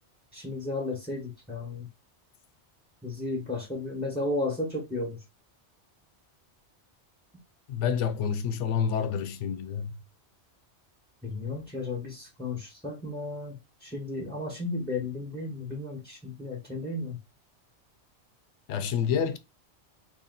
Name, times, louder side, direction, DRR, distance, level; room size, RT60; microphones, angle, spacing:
voice 1, 0.3-1.9 3.0-5.2 11.2-17.2, left 2 dB, 5° left, 1.0 m, -34 dB
voice 2, 7.7-9.9 18.7-19.4, left 7 dB, 90° left, 0.9 m, -28 dB
2.9 x 2.8 x 3.8 m
omnidirectional pair, 1.2 m